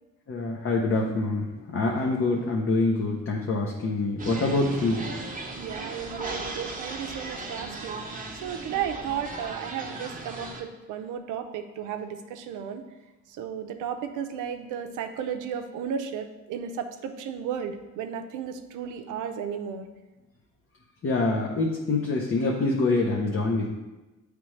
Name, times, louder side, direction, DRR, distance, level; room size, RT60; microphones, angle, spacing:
voice 1, 0.3-5.1 21.0-23.7, left 3 dB, 45° left, -1 dB, 0.8 m, -25 dB
sound 1, 4.2-10.6, right 3 dB, 25° right, 1.0 m, -37 dB
voice 2, 5.6-8.0 8.4-12.8 13.4-19.9, right 8 dB, 85° right, 7 dB, 0.6 m, -34 dB
8.6 x 3.4 x 3.2 m, 1.1 s
cardioid pair, 90°, 30 cm